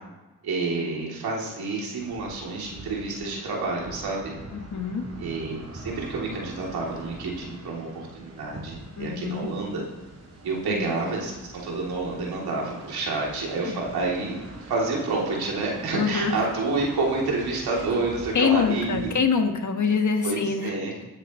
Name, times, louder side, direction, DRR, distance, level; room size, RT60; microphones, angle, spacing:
voice 1, 0.4-4.3 5.2-9.8 10.4-14.4 14.7-19.1 20.2-20.9, right 3 dB, 85° right, -3 dB, 3.0 m, -29 dB
sound 1, 2.0-19.2, right 2 dB, 40° right, 3.3 m, -44 dB
voice 2, 4.5-5.1 9.0-9.5 10.7-10.9 13.6-13.8 15.9-16.4 18.3-20.7, left 6 dB, 55° left, 5 dB, 1.6 m, -25 dB
17.0 x 9.8 x 3.1 m, 1.1 s
cardioid pair, 65°, 36 cm